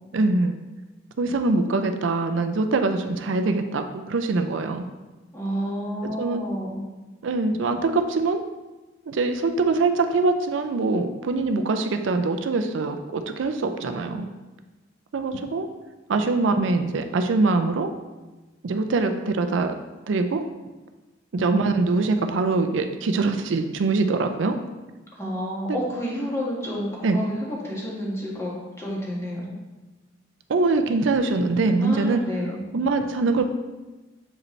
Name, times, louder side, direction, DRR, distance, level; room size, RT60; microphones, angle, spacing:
voice 1, 0.1-0.6 1.2-4.8 6.0-6.4 7.2-8.4 9.1-14.3 15.1-15.7 16.1-17.9 18.6-19.8 20.1-20.4 21.3-24.6 25.7-25.8 27.0-27.2 30.5-32.2 32.7-33.5, right 3 dB, 70° right, 7 dB, 0.4 m, -23 dB
voice 2, 5.3-6.8 25.2-29.4 31.8-32.6, equal, 15° left, -5 dB, 1.6 m, -30 dB
7.4 x 5.0 x 3.2 m, 1.2 s
head